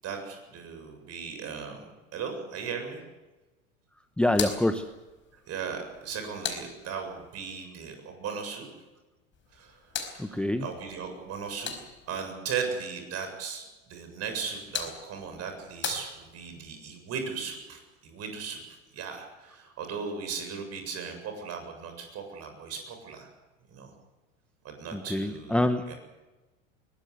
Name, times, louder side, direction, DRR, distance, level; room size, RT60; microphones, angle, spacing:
voice 1, 0.0-3.0 5.5-8.7 9.5-11.7 12.1-23.3 23.7-23.9 24.6-25.6 25.9-26.0, right 6 dB, 40° right, 5 dB, 7.5 m, -37 dB
voice 2, 4.2-4.8 10.2-10.7 24.9-25.8, left 1 dB, 5° left, 9 dB, 0.9 m, -26 dB
sound 1, 4.3-7.3 9.3-12.3 14.2-16.7, left 6 dB, 30° left, 4.7 m, -40 dB
22.0 x 20.0 x 8.1 m, 1.1 s
figure-of-eight pair, 85°, 40 cm